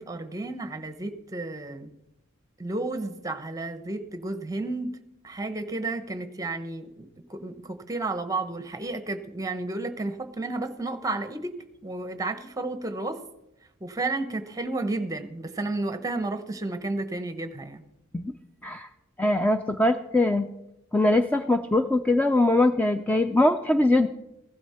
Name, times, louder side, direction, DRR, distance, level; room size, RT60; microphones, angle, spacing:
voice 1, 0.0-1.9 2.6-5.0 5.2-11.6 11.8-13.2 13.8-17.8, right 2 dB, 15° right, 10 dB, 0.9 m, -32 dB
voice 2, 19.2-20.5 20.9-24.1, left 2 dB, 10° left, 8 dB, 0.4 m, -22 dB
15.5 x 11.5 x 4.3 m, 0.89 s
head